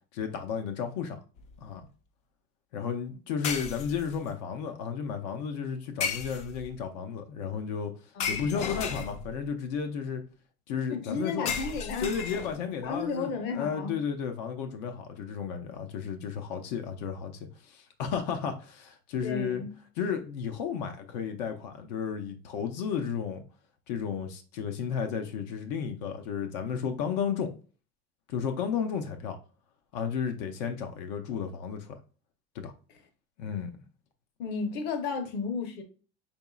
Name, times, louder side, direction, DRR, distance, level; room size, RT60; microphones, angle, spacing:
voice 1, 0.1-1.2 1.6-1.8 2.7-10.2 10.7-11.5 12.0-19.6 20.0-23.4 23.9-27.5 28.3-29.4 29.9-32.0 32.5-32.7 33.4-33.7, left 7 dB, 90° left, 0.7 m, -33 dB
sound 1, 1.4-1.6 3.4-4.3 6.0-6.8 8.2-9.5 11.5-12.8, left 6 dB, 35° left, 0.4 m, -34 dB
voice 2, 8.1-8.5 10.9-12.1 12.8-14.0 19.2-19.7 34.4-35.8, left 5 dB, 55° left, 0.8 m, -33 dB
5.3 x 2.9 x 2.3 m
cardioid pair, 155°, 21 cm